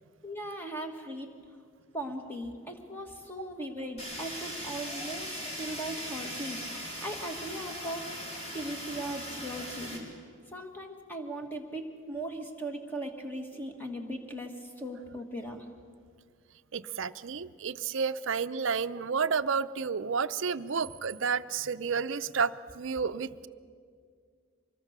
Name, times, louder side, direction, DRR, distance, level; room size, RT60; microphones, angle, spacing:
voice 1, 0.2-1.3 1.9-8.1 8.5-10.1 10.5-15.7, right 1 dB, 10° left, 3 dB, 1.8 m, -38 dB
Fire, 4.0-10.0, equal, 30° left, 3.8 m, -39 dB
voice 2, 16.7-23.5, right 5 dB, 60° right, 12 dB, 0.6 m, -31 dB
25.0 x 21.0 x 6.7 m, 2.1 s
head